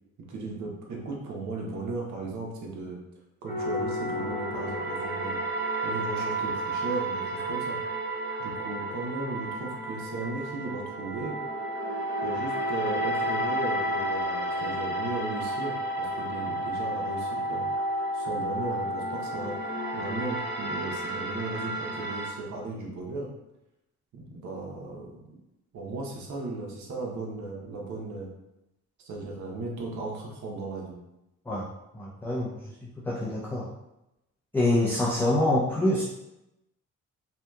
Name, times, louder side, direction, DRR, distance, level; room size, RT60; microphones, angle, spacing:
voice 1, 0.3-3.0 3.4-5.4 5.8-7.8 8.4-11.4 12.2-17.7 18.1-19.5 19.9-23.3 24.1-25.4 25.7-28.3 29.0-31.0, right 3 dB, 70° right, -1 dB, 0.7 m, -36 dB
sound 1, 3.5-22.3, right 1 dB, 35° right, 0.9 m, -31 dB
voice 2, 31.9-32.5 33.0-33.7 34.5-36.0, left 1 dB, 5° left, -6 dB, 0.4 m, -25 dB
2.7 x 2.2 x 2.2 m, 0.92 s
cardioid pair, 90°, 30 cm